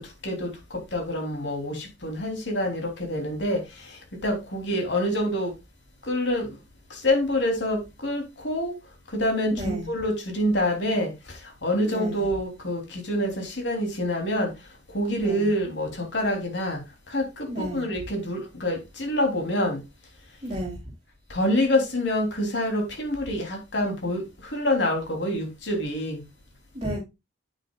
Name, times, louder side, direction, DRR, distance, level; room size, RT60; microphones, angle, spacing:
voice 1, 0.9-3.6 4.2-5.5 6.1-6.5 7.0-8.7 9.1-11.1 11.6-14.5 14.9-16.8 17.1-19.8 21.3-26.2, left 1 dB, 65° left, 3.3 m, -26 dB
voice 2, 9.5-9.9 11.8-12.2 15.2-15.5 17.5-17.9 20.4-20.8 26.7-27.0, equal, 30° right, 3.0 m, -32 dB
9.2 x 8.9 x 2.4 m
head